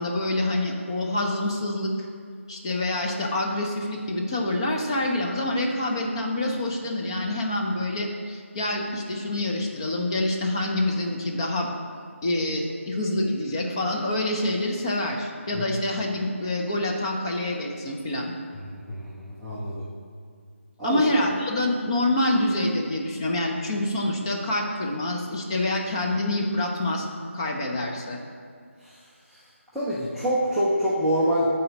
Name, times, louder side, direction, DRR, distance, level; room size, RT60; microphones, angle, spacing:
voice 1, 0.0-1.9 2.5-11.7 12.2-18.3 20.8-27.0 27.3-28.2, left 1 dB, 20° left, 0 dB, 0.8 m, -26 dB
voice 2, 18.7-19.8 20.8-21.0 28.8-29.0 29.3-29.4 29.7-31.5, equal, ahead, -13 dB, 0.5 m, -26 dB
9.6 x 4.3 x 6.5 m, 2.1 s
figure-of-eight pair, 160°, 7 cm